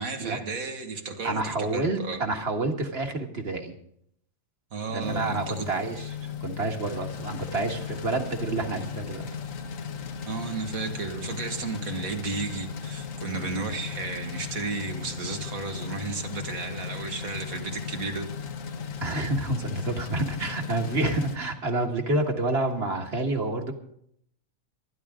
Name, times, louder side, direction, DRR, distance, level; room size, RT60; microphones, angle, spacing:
voice 1, 0.0-2.2 4.7-5.7 10.3-18.3, right 4 dB, 75° right, 4 dB, 2.1 m, -33 dB
voice 2, 1.2-3.7 4.9-9.3 19.0-23.7, right 2 dB, 45° right, 4 dB, 1.9 m, -28 dB
sound 1, 5.0-21.4, left 6 dB, 70° left, 1.4 m, -36 dB
23.0 x 10.5 x 3.7 m, 0.69 s
omnidirectional pair, 1.5 m